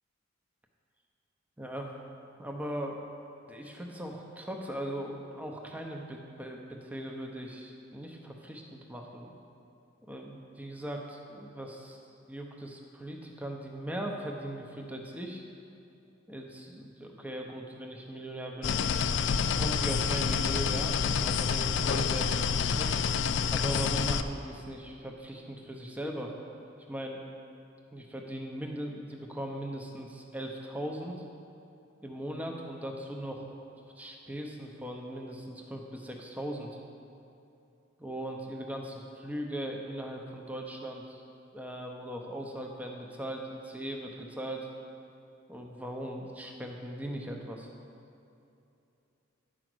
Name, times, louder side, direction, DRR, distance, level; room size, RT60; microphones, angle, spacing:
voice 1, 1.6-1.9 2.4-3.0 3.5-9.4 10.0-12.0 12.3-15.4 16.3-18.8 19.5-22.9 23.5-26.3 26.9-27.2 27.9-31.2 32.0-33.4 34.0-36.8 38.0-41.2 41.5-44.7 45.5-47.7, right 1 dB, 10° right, 1 dB, 0.7 m, -39 dB
sound 1, 18.6-24.2, left 6 dB, 60° left, 0.3 m, -28 dB
9.3 x 5.0 x 6.1 m, 2.7 s
head